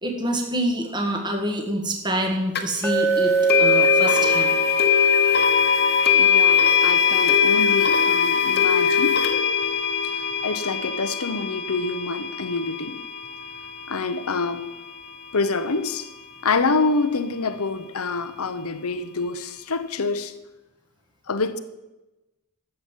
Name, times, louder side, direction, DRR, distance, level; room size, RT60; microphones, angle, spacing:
voice 1, 0.0-4.6, right 1 dB, 20° right, 1.7 m, -26 dB
sound 1, 2.5-2.6 3.5-14.5, left 7 dB, 50° left, 1.3 m, -21 dB
Glass, 2.8-7.0, right 5 dB, ahead, 2.0 m, -25 dB
voice 2, 6.1-9.2 10.1-13.0 13.9-14.7 15.3-16.1 16.4-20.3 21.3-21.6, left 3 dB, 70° left, 0.9 m, -26 dB
13.5 x 7.8 x 7.4 m
head